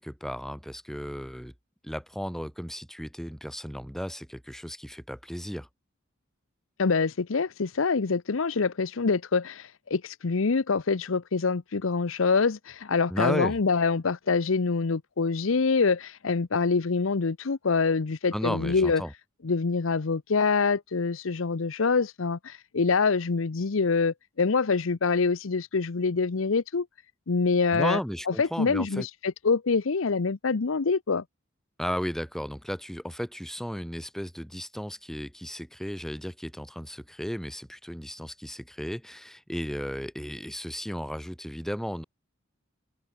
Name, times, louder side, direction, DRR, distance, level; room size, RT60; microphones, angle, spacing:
voice 1, 0.0-1.5 1.8-5.7 13.1-13.6 18.3-19.1 27.7-29.1 31.8-42.0, equal, ahead, 2.4 m, -34 dB
voice 2, 6.8-19.0 19.4-26.9 27.3-28.0 28.3-31.2, left 4 dB, 80° left, 0.7 m, -25 dB
open air
head